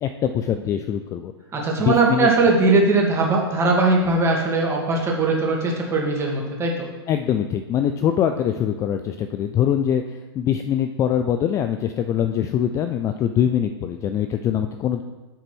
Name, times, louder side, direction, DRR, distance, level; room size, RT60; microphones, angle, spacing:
voice 1, 0.0-1.3 1.8-2.3 7.1-10.0 10.4-15.0, left 9 dB, 20° left, 7 dB, 0.4 m, -23 dB
voice 2, 1.5-6.9, right 3 dB, 20° right, -1 dB, 2.0 m, -20 dB
8.0 x 4.0 x 6.1 m, 1.2 s
hypercardioid pair, 125°, 14 cm